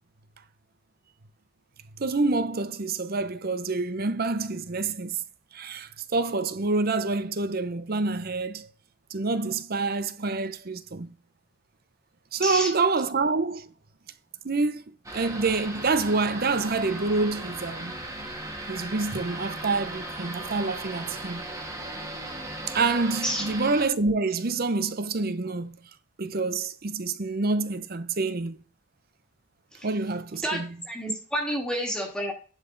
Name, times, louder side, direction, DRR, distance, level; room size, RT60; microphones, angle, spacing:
voice 1, 2.0-5.2 5.5-8.7 9.1-11.1 12.3-13.7 14.4-14.8 15.1-17.9 18.7-21.4 22.7-25.8 26.2-28.6 29.8-30.7 31.5-31.6, right 3 dB, 45° right, 0.7 m, -27 dB
sound 1, 15.0-23.9, right 1 dB, 15° right, 1.7 m, -37 dB
voice 2, 30.4-32.3, equal, 5° left, 2.0 m, -29 dB
10.5 x 5.6 x 3.9 m
head